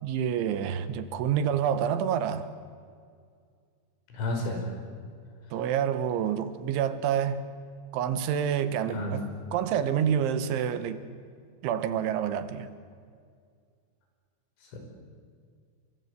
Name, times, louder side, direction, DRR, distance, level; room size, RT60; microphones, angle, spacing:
voice 1, 0.0-2.5 5.5-7.5 7.9-9.2 9.5-11.0 11.6-12.7, right 8 dB, 80° right, 12 dB, 3.6 m, -28 dB
voice 2, 4.1-4.8 8.9-9.2 14.6-14.8, left 1 dB, 90° left, 2 dB, 7.8 m, -32 dB
28.5 x 24.0 x 8.3 m, 2.2 s
omnidirectional pair, 5.4 m